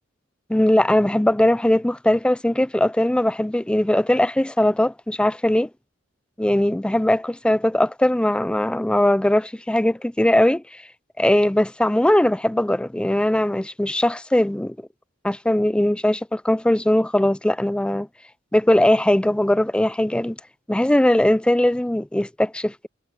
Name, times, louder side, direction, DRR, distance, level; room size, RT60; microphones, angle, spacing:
voice 1, 0.5-5.7 6.4-10.8 11.2-14.8 15.2-18.1 18.5-20.4 20.7-22.9, left 1 dB, 5° left, 0.3 m, -20 dB
head